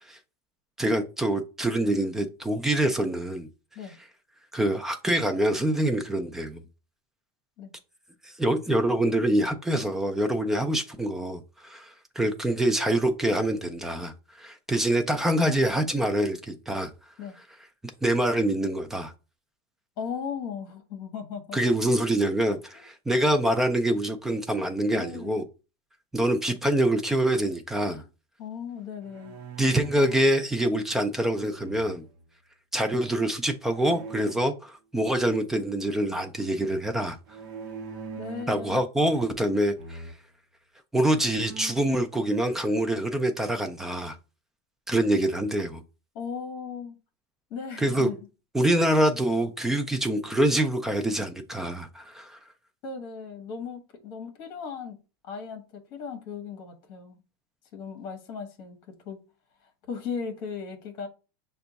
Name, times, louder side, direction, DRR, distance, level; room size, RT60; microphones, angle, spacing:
voice 1, 0.8-3.5 4.5-6.6 8.4-14.1 14.4-16.9 18.0-19.1 21.5-25.4 26.1-28.0 29.6-32.0 32.7-37.2 38.5-40.0 40.9-44.2 44.9-45.8 47.8-48.1 48.5-52.4, right 1 dB, 5° right, 0.3 m, -25 dB
voice 2, 20.0-21.6 22.7-22.8 24.9-25.4 27.9-28.1 28.4-29.4 38.2-38.8 46.1-47.0 47.5-48.2 52.8-55.0 55.2-57.2 57.7-59.2 59.9-61.1, left 6 dB, 35° left, 1.1 m, -37 dB
sound 1, 29.0-30.4 31.5-32.2 33.7-34.3 37.3-38.6 39.0-39.5 39.8-40.2 40.8-40.9 41.2-42.0, right 5 dB, 55° right, 0.8 m, -42 dB
5.9 x 2.3 x 3.9 m
supercardioid pair, 175°, 12 cm